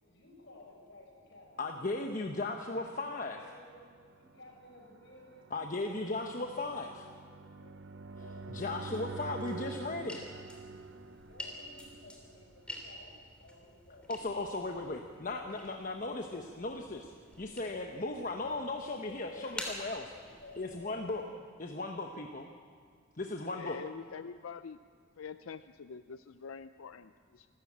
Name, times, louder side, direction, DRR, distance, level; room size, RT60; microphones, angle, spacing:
voice 1, 0.0-2.0 2.4-2.7 3.3-3.8 4.2-5.5 6.0-6.4 7.0-7.7 8.1-8.5 8.8-10.1 11.3-13.1 13.4-14.0 14.4-14.5 15.2-15.9 19.2-19.6 20.2-21.1, left 2 dB, 60° left, 0 dB, 5.9 m, -56 dB
voice 2, 1.6-3.4 5.5-7.1 8.5-10.2 14.1-17.1 17.4-20.1 20.6-21.3 21.6-22.5 23.2-23.8, left 2 dB, 40° left, 4 dB, 1.0 m, -37 dB
sound 1, 2.2-13.0, right 3 dB, 60° right, 0.7 m, -47 dB
sound 2, 8.7-21.2, left 1 dB, 5° left, 3.1 m, -49 dB
voice 3, 23.5-24.8 25.2-27.5, left 6 dB, 90° left, 12 dB, 0.5 m, -45 dB
26.5 x 13.5 x 8.7 m, 2.1 s
head